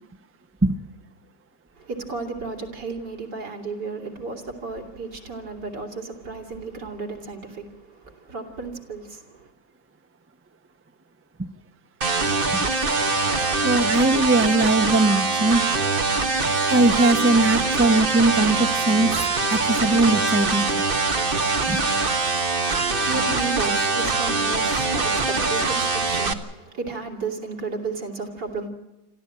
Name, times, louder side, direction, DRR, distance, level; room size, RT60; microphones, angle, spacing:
voice 1, 1.8-9.5 22.9-28.7, right 4 dB, 85° right, 3.7 m, -33 dB
sound 1, 12.0-26.3, right 3 dB, 35° right, 1.4 m, -23 dB
voice 2, 13.6-15.7 16.7-19.1 19.5-20.7 21.7-21.8, right 2 dB, 10° right, 0.6 m, -20 dB
26.5 x 14.5 x 8.8 m
omnidirectional pair, 1.8 m